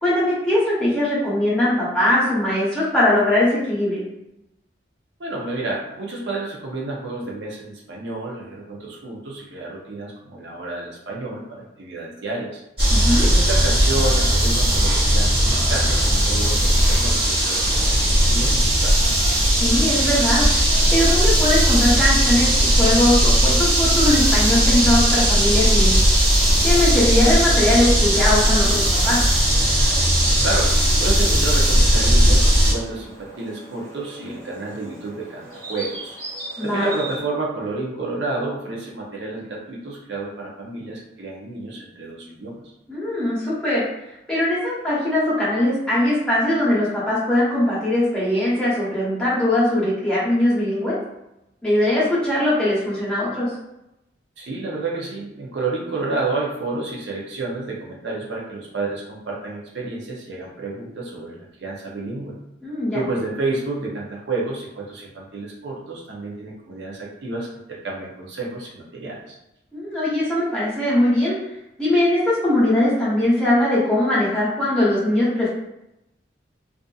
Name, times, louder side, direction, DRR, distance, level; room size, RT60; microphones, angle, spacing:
voice 1, 0.0-4.0 12.9-13.3 19.6-26.0 26.6-29.2 36.6-36.9 42.9-43.8 44.3-50.9 51.6-53.5 62.6-63.0 69.7-71.4 71.8-75.5, left 1 dB, 5° left, -10 dB, 0.8 m, -20 dB
voice 2, 5.2-12.6 13.2-19.0 30.4-36.2 36.6-42.7 54.4-62.4 62.9-69.4, right 2 dB, 75° right, -2 dB, 0.6 m, -30 dB
sound 1, 12.8-32.7, equal, 30° right, 1.1 m, -17 dB
Insect, 20.2-37.2, right 1 dB, 50° right, 1.2 m, -38 dB
2.5 x 2.4 x 2.3 m, 0.88 s
head